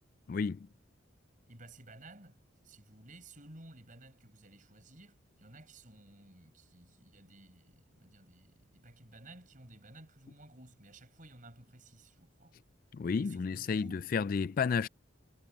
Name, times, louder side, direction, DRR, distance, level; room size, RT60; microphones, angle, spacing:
voice 1, 0.3-0.7 12.9-14.9, left 5 dB, 45° left, 0.3 m, -31 dB
voice 2, 1.5-12.6 13.2-14.1, right 2 dB, 40° right, 5.5 m, -55 dB
head